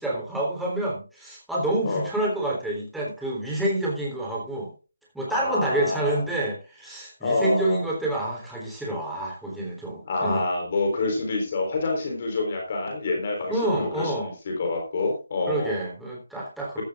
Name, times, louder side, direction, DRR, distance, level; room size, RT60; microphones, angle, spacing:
voice 1, 0.0-4.7 5.1-10.5 13.5-14.3 15.5-16.8, right 1 dB, ahead, -3 dB, 3.6 m, -28 dB
voice 2, 5.3-6.2 7.2-7.8 10.1-15.8, left 3 dB, 35° left, 2 dB, 4.0 m, -27 dB
15.0 x 12.5 x 2.5 m, 0.33 s
figure-of-eight pair, 160°, 0 cm